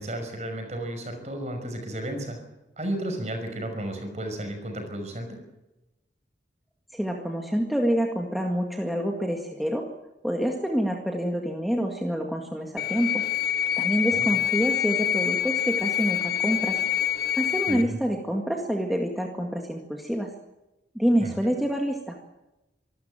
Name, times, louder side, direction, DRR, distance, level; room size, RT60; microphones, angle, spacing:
voice 1, 0.0-2.4 2.8-5.4 14.1-14.3 17.7-18.0 21.2-21.3, right 1 dB, 40° right, 5 dB, 5.7 m, -33 dB
voice 2, 6.9-9.9 10.2-13.2 13.8-16.8 17.4-20.3 21.0-22.2, equal, ahead, 1 dB, 1.9 m, -27 dB
sound 1, 12.8-17.8, left 10 dB, 55° left, 1.5 m, -26 dB
25.5 x 13.5 x 9.1 m, 0.97 s
head